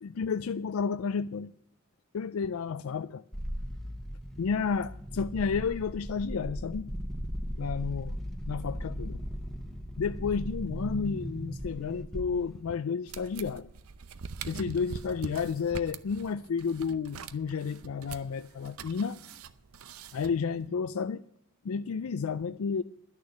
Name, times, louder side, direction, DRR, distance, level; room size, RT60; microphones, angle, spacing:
voice 1, 0.0-1.5 2.1-3.2 4.4-6.9 7.6-8.2 8.5-9.2 10.0-13.7 14.5-19.2 20.1-21.2 21.6-22.8, left 5 dB, 75° left, 0.4 m, -31 dB
sound 1, 3.3-12.7, equal, ahead, 1.0 m, -37 dB
sound 2, 13.1-20.7, right 5 dB, 85° right, 0.7 m, -44 dB
11.5 x 6.6 x 8.9 m
head